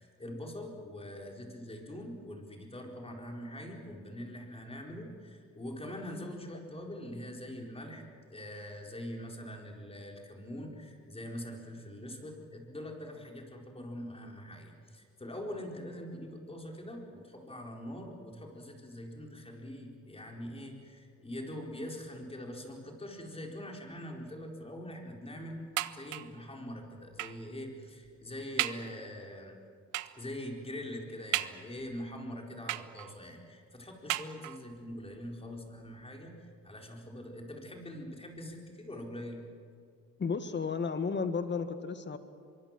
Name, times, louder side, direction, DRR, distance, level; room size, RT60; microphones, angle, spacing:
voice 1, 0.0-25.6 25.9-29.6 30.1-39.4, left 1 dB, 20° left, 1 dB, 4.6 m, -43 dB
sound 1, 25.8-26.4 27.2-27.5 28.0-28.1 28.6-29.0 29.9-30.3 31.3-32.0 32.7-33.3 34.1-34.8 35.6-35.7 36.0-36.1, right 15 dB, 85° right, 0.8 m, -36 dB
voice 2, 40.2-42.2, left 5 dB, 35° left, 9 dB, 1.9 m, -33 dB
24.5 x 23.0 x 7.6 m, 2.3 s
cardioid pair, 90°, 30 cm